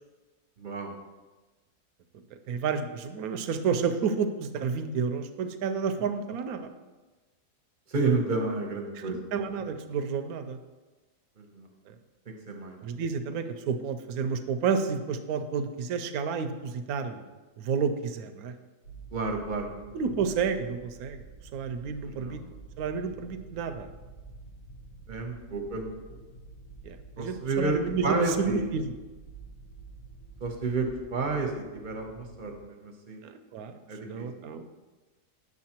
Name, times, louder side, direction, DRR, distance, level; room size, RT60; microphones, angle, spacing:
voice 1, 0.6-0.9 7.9-9.3 11.4-11.7 12.3-12.8 19.1-19.9 22.2-22.4 25.1-25.9 27.2-27.8 28.0-28.7 30.4-33.2 33.9-34.3, right 3 dB, 40° right, 3 dB, 0.7 m, -31 dB
voice 2, 2.5-6.7 8.9-10.6 11.9-12.0 12.8-17.3 17.6-18.5 19.9-21.2 21.5-22.4 22.8-23.9 26.8-28.9 33.2-33.8 34.0-34.7, right 6 dB, 70° right, 9 dB, 1.0 m, -30 dB
sound 1, 18.8-32.6, right 3 dB, 75° left, 1.7 m, -48 dB
8.3 x 6.5 x 2.9 m, 1.2 s
omnidirectional pair, 1.7 m